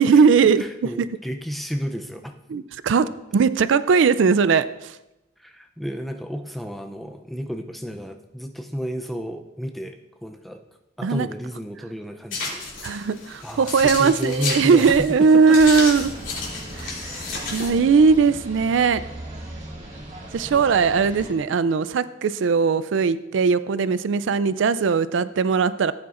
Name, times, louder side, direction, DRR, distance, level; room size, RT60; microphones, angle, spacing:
voice 1, 0.0-1.1 2.5-3.1 3.3-4.7 11.0-11.3 12.8-16.1 16.8-19.0 20.3-25.9, right 5 dB, 80° right, 15 dB, 0.4 m, -19 dB
voice 2, 0.6-2.3 5.4-10.6 11.0-13.1 13.4-15.6 15.9-16.0, equal, ahead, 4 dB, 0.5 m, -32 dB
sound 1, 12.3-17.9, left 3 dB, 90° left, 2.8 m, -32 dB
sound 2, 15.9-21.3, right 1 dB, 35° right, 1.9 m, -38 dB
14.5 x 8.5 x 2.5 m, 0.94 s
head